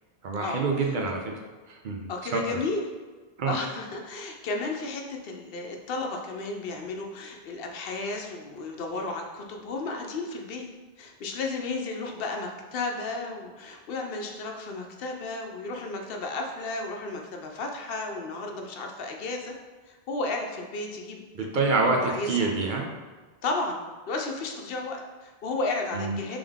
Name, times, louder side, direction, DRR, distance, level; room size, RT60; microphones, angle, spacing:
voice 1, 0.2-1.3 1.7-2.6 3.4-3.5 21.3-22.9 25.9-26.2, right 3 dB, 60° right, 1 dB, 0.6 m, -27 dB
voice 2, 2.1-2.8 3.4-10.7 11.0-19.5 19.9-21.5 21.9-22.5 23.4-23.8 24.1-26.4, left 3 dB, 70° left, 2 dB, 0.8 m, -33 dB
3.6 x 3.4 x 3.5 m, 1.3 s
omnidirectional pair, 1.0 m